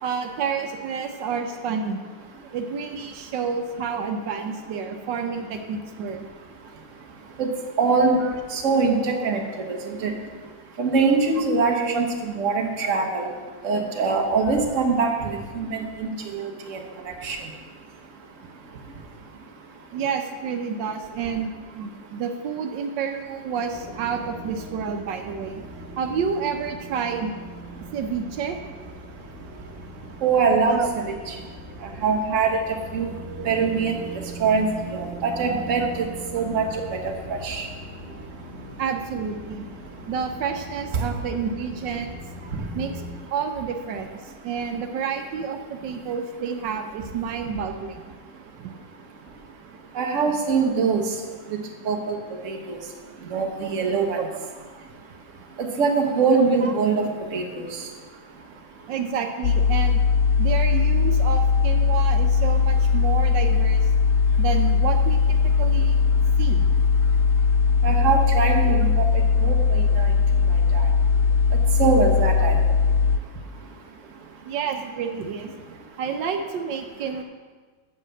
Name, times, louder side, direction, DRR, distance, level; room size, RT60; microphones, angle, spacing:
voice 1, 0.0-2.1 2.5-6.2 8.2-8.3 11.9-12.0 12.8-12.9 19.9-25.6 26.0-27.3 27.9-28.6 30.7-30.9 33.4-33.5 38.8-39.7 40.1-42.1 42.4-42.5 42.7-43.0 43.3-48.0 48.6-48.7 56.6-57.1 58.9-60.0 60.4-63.9 64.4-66.0 66.4-66.6 74.4-75.5 76.0-77.2, right 6 dB, 80° right, 5 dB, 1.4 m, -29 dB
voice 2, 7.8-8.2 8.5-9.4 9.7-10.1 10.8-13.3 13.6-15.1 15.5-16.8 17.2-17.4 30.2-31.3 32.0-32.6 32.9-33.1 33.4-33.9 34.4-36.1 36.3-37.0 37.3-37.6 49.9-51.0 51.5-51.6 51.8-52.2 52.4-52.8 53.3-54.2 55.6-57.7 67.8-68.9 69.4-70.1 70.7-70.8 71.8-72.5, right 4 dB, 50° right, 2 dB, 1.4 m, -23 dB
sound 1, 23.7-43.2, right 1 dB, 10° right, 1.6 m, -40 dB
sound 2, 59.4-73.2, left 5 dB, 80° left, 1.2 m, -19 dB
8.2 x 6.6 x 7.6 m, 1.5 s
omnidirectional pair, 1.9 m